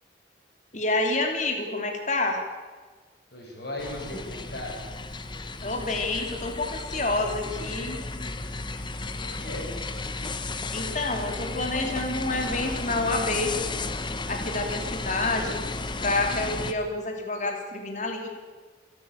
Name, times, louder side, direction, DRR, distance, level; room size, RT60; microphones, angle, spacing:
voice 1, 0.7-2.4 5.6-8.0 10.7-13.5 14.3-15.6 16.0-18.3, left 2 dB, 40° left, 4 dB, 2.9 m, -28 dB
voice 2, 3.3-4.8 9.2-9.7, left 1 dB, 60° left, -1 dB, 7.7 m, -37 dB
sound 1, 3.8-16.7, left 3 dB, 25° left, 1.0 m, -34 dB
28.0 x 12.5 x 9.0 m, 1.4 s
head